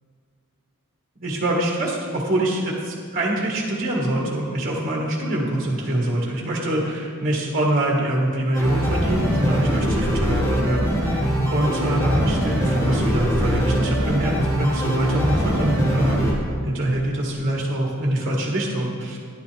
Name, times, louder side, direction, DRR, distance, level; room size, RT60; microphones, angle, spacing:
voice 1, 1.2-19.2, right 1 dB, 40° right, -2 dB, 1.7 m, -24 dB
sound 1, 8.5-16.3, equal, 15° left, 2.2 m, -22 dB
12.0 x 11.0 x 3.4 m, 2.2 s
head